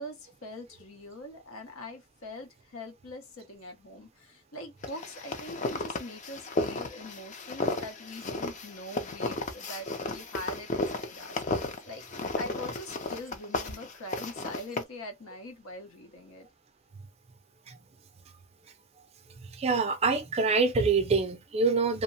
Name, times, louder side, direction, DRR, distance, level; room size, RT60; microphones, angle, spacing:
voice 1, 0.0-12.1 12.4-16.5, left 1 dB, 75° left, 0.8 m, -43 dB
sound 1, 4.8-14.8, left 2 dB, 35° left, 0.4 m, -34 dB
voice 2, 19.5-22.0, right 4 dB, 30° right, 0.3 m, -25 dB
2.8 x 2.1 x 2.6 m
head